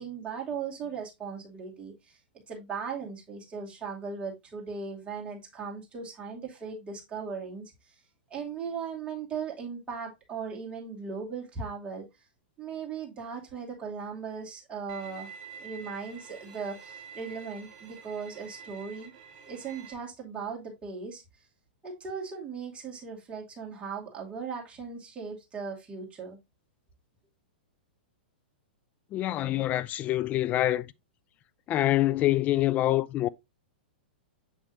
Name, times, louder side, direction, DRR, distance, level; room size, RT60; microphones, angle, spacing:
voice 1, 0.0-2.2 2.5-7.9 8.3-12.0 12.6-15.3 15.6-19.1 19.5-21.2 21.8-26.4, right 5 dB, 20° right, 2.6 m, -38 dB
Bowed string instrument, 14.9-19.9, right 6 dB, 50° right, 2.4 m, -47 dB
voice 2, 29.1-30.9 31.7-33.3, left 14 dB, 30° left, 0.3 m, -25 dB
6.8 x 6.0 x 2.6 m
hypercardioid pair, 105°, 5 cm